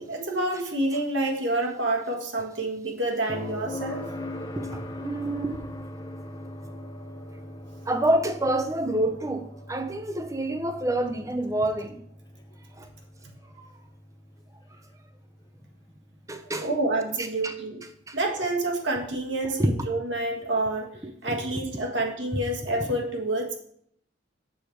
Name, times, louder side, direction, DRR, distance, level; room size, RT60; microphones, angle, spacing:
voice 1, 0.0-4.1 16.6-17.8 18.1-20.9 21.2-23.6, right 2 dB, 70° right, 1 dB, 1.5 m, -28 dB
sound 1, 3.3-17.1 19.4-19.5, left 1 dB, 20° left, 0.7 m, -41 dB
voice 2, 4.6-5.6 7.9-12.0 12.8-12.9 13.6-13.7 16.3-16.7 17.2-17.5 18.1-18.2 19.6-19.7 21.0-21.4, right 1 dB, 15° right, 8 dB, 0.7 m, -27 dB
7.1 x 6.7 x 4.6 m, 0.66 s
head